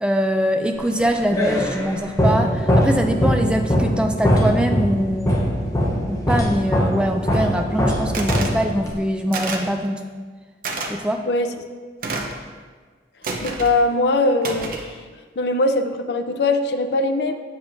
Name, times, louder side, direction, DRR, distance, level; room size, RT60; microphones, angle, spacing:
voice 1, 0.0-5.6 6.1-10.0 10.9-11.2, equal, 5° right, 4 dB, 0.3 m, -23 dB
sound 1, 0.9-9.0, equal, 20° left, 0.8 m, -21 dB
sound 2, 8.1-8.6 9.3-9.7 10.6-10.9 12.0-12.4 13.2-13.7 14.4-14.9, right 3 dB, 50° right, 0.6 m, -28 dB
voice 2, 13.4-15.0 15.4-17.3, left 2 dB, 70° left, 6 dB, 0.5 m, -21 dB
7.3 x 6.9 x 2.6 m, 1.5 s
head